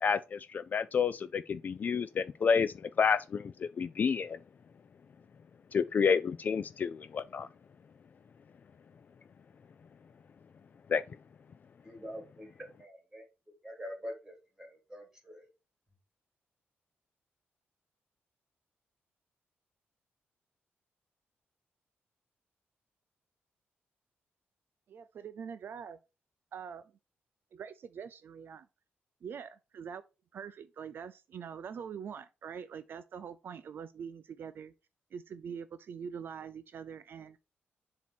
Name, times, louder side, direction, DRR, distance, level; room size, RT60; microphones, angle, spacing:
voice 1, 0.0-4.4 5.7-7.5 10.9-11.0, left 6 dB, 40° left, 0.3 m, -30 dB
voice 2, 11.8-13.2 13.6-15.5, equal, 10° right, 2.4 m, -45 dB
voice 3, 24.9-26.0 26.5-26.9 27.5-28.7 29.2-30.0 30.3-34.7 35.1-37.4, right 7 dB, 55° right, 0.4 m, -44 dB
7.3 x 2.9 x 5.9 m
wide cardioid pair, 135°, 4 cm